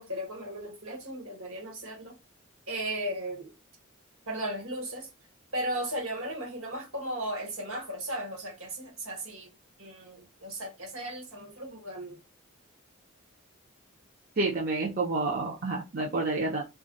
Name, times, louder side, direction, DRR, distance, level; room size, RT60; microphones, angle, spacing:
voice 1, 0.0-2.1 2.7-3.5 4.3-5.1 5.5-9.5 9.8-12.2, right 1 dB, 70° right, 1.3 m, -36 dB
voice 2, 14.4-16.6, right 3 dB, 45° right, 0.7 m, -29 dB
2.3 x 2.2 x 3.9 m
head